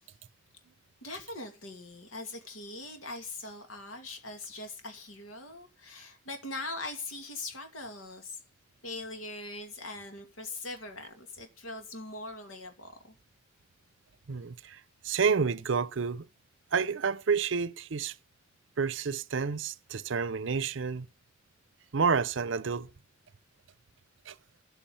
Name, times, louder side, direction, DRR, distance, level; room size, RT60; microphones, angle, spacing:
voice 1, 1.0-8.4 8.8-13.1, left 2 dB, 90° left, 2.5 m, -41 dB
voice 2, 14.3-16.3 16.7-18.1 18.8-21.1 21.9-22.9 24.3-24.4, right 5 dB, 65° right, 0.6 m, -29 dB
11.0 x 8.6 x 6.9 m
head